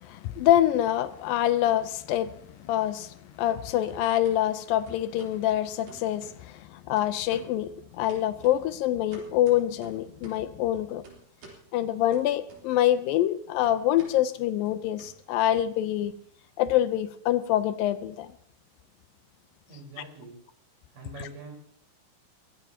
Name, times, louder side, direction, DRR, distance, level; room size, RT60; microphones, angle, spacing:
voice 1, 0.0-11.0 11.7-16.1 16.6-18.3, left 12 dB, 80° left, 2.4 m, -26 dB
sound 1, 0.7-1.7 2.0-3.6 3.9-4.4 4.9-5.4 5.9-6.7 7.0-7.6 8.1-10.5 11.0-11.6 12.1-13.0 13.2-16.1, right 2 dB, 80° right, 5.4 m, -52 dB
voice 2, 19.7-20.4 20.9-21.5, right 3 dB, 60° right, 5.8 m, -44 dB
22.0 x 16.5 x 2.9 m
omnidirectional pair, 4.1 m